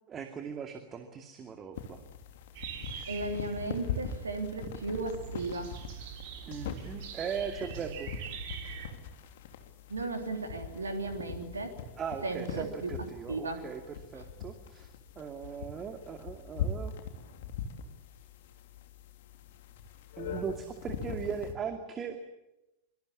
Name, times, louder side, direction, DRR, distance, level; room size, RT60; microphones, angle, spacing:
voice 1, 0.1-2.0 6.5-8.1 12.0-13.8 14.1-14.9 15.2-16.9 20.2-22.2, right 6 dB, 25° right, 6 dB, 2.3 m, -38 dB
sound 1, 1.7-21.5, left 6 dB, 55° left, 3.2 m, -42 dB
sound 2, 2.5-8.9, right 8 dB, 50° right, 3.9 m, -44 dB
voice 2, 3.1-5.8 9.9-11.8 12.2-12.9 13.3-13.6, right 2 dB, 75° right, 6 dB, 3.4 m, -35 dB
25.0 x 24.5 x 8.5 m, 0.94 s
figure-of-eight pair, 90°, 0 cm